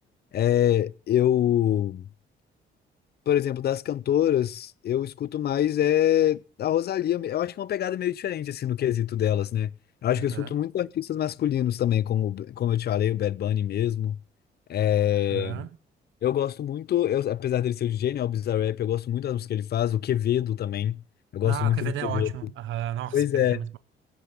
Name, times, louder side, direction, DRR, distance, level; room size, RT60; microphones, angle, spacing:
voice 1, 0.3-2.0 3.3-9.7 10.0-14.2 14.7-15.6 16.2-21.0 21.3-22.3 23.1-23.6, left 11 dB, 55° left, 0.5 m, -25 dB
voice 2, 10.2-10.5 15.1-15.7 21.4-23.8, right 12 dB, 75° right, 0.8 m, -34 dB
16.5 x 8.2 x 5.4 m
cardioid pair, 90°, 20 cm